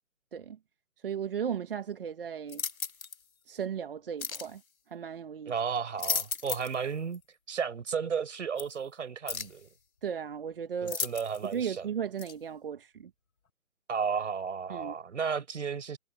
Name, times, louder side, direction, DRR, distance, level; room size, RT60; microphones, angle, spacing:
voice 1, 1.0-2.6 3.5-4.6 4.9-5.5 10.0-11.0 11.4-13.1 14.7-14.9, right 7 dB, 40° right, 1.6 m, -36 dB
sound 1, 2.5-3.2 4.2-4.5 5.8-6.8 7.1-7.2 8.6-8.7 9.3-9.6 10.9-11.5 12.2-12.3, left 5 dB, 85° left, 2.0 m, -35 dB
voice 2, 5.5-7.2 7.5-9.7 10.8-11.9 13.9-16.0, right 6 dB, 60° right, 5.0 m, -33 dB
hypercardioid pair, 165°, 41 cm